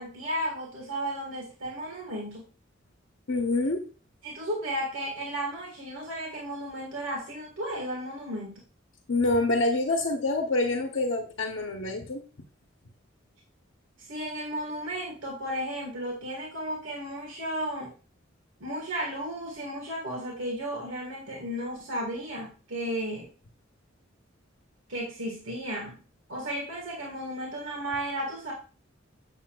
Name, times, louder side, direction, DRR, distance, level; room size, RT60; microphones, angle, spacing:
voice 1, 0.0-2.4 4.2-8.6 14.1-17.9 18.6-23.3 24.9-26.0 26.3-28.5, right 1 dB, 90° right, -1 dB, 1.6 m, -34 dB
voice 2, 3.3-3.8 9.1-12.2, left 2 dB, 70° left, 3 dB, 0.9 m, -26 dB
7.6 x 7.0 x 2.3 m, 0.37 s
head